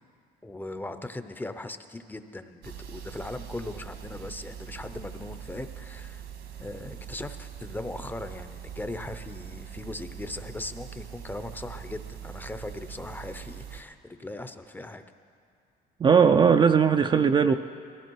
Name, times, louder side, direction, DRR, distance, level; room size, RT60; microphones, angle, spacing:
voice 1, 0.4-6.3 6.6-15.0, left 2 dB, 10° left, 9 dB, 0.6 m, -39 dB
sound 1, 2.6-13.8, right 9 dB, 75° right, 1.5 m, -42 dB
voice 2, 16.0-17.6, right 6 dB, 30° right, 7 dB, 0.4 m, -19 dB
18.0 x 14.0 x 4.6 m, 2.3 s
cardioid pair, 110°, 17 cm